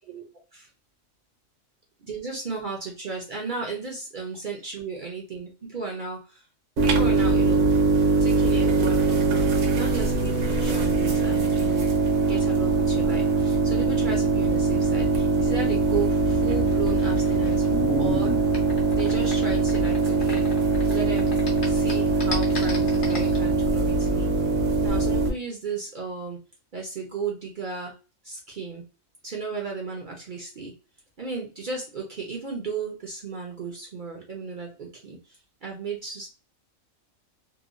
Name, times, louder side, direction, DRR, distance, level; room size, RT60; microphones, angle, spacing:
voice 1, 2.0-6.4 6.8-7.7 8.2-11.9 12.3-17.6 18.0-18.3 19.0-20.5 20.9-21.3 21.6-24.3 24.8-26.4 26.7-27.9 28.2-28.8 29.2-30.7 31.2-36.3, right 4 dB, 50° right, 0 dB, 0.6 m, -34 dB
sound 1, 6.8-25.3, right 3 dB, 70° right, 1.0 m, -22 dB
sound 2, 16.6-20.9 21.2-23.4, left 1 dB, 45° left, 0.8 m, -33 dB
2.9 x 2.2 x 2.4 m, 0.33 s
omnidirectional pair, 1.4 m